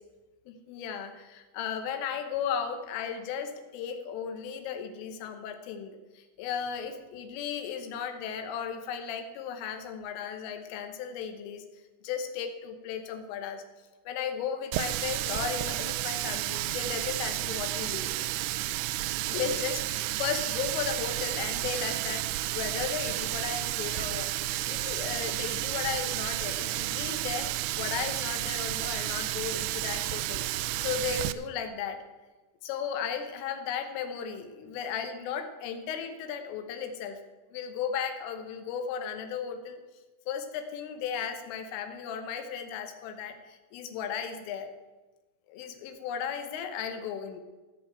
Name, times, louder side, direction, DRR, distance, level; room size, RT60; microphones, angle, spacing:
voice 1, 0.5-11.7 12.0-13.6 14.1-18.1 19.3-24.3 24.7-30.5 30.8-32.0 32.6-37.2 37.5-39.8 40.3-44.7 45.5-47.4, left 7 dB, 85° left, 7 dB, 3.6 m, -35 dB
Water tap faucet, 14.7-31.3, right 16 dB, 85° right, 2.9 m, -32 dB
16.0 x 5.9 x 7.8 m, 1.2 s
omnidirectional pair, 5.6 m